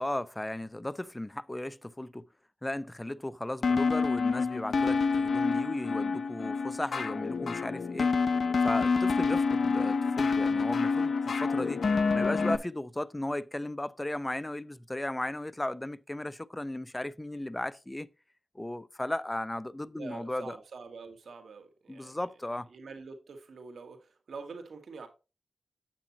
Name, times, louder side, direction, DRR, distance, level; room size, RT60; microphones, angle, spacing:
voice 1, 0.0-2.2 2.6-8.1 8.6-11.8 12.1-18.1 18.5-20.6 21.9-22.7, left 1 dB, 20° left, 0.6 m, -35 dB
sound 1, 3.6-12.6, left 4 dB, 75° left, 0.8 m, -27 dB
voice 2, 20.0-22.4 22.7-25.1, right 4 dB, 85° right, 1.9 m, -46 dB
9.0 x 8.2 x 3.0 m
cardioid pair, 45°, 0 cm